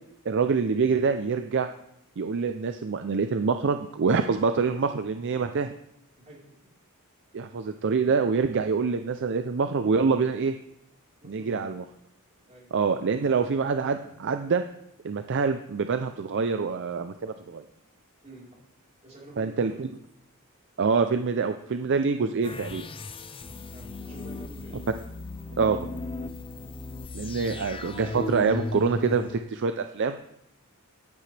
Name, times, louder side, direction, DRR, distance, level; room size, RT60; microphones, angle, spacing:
voice 1, 0.3-1.7 2.2-5.7 7.3-10.5 11.3-11.8 12.7-14.6 15.0-17.6 19.4-19.9 20.8-22.9 25.6-25.8 27.1-30.2, right 5 dB, 55° right, 9 dB, 0.5 m, -25 dB
voice 2, 6.3-6.6 11.2-11.7 12.5-12.7 14.0-14.1 18.2-18.6 19.0-19.9 23.7-24.8 27.3-27.6, right 2 dB, 30° right, -5 dB, 4.1 m, -48 dB
sound 1, 22.4-29.4, left 2 dB, 25° left, 0.5 m, -36 dB
12.0 x 10.5 x 3.3 m, 0.82 s
head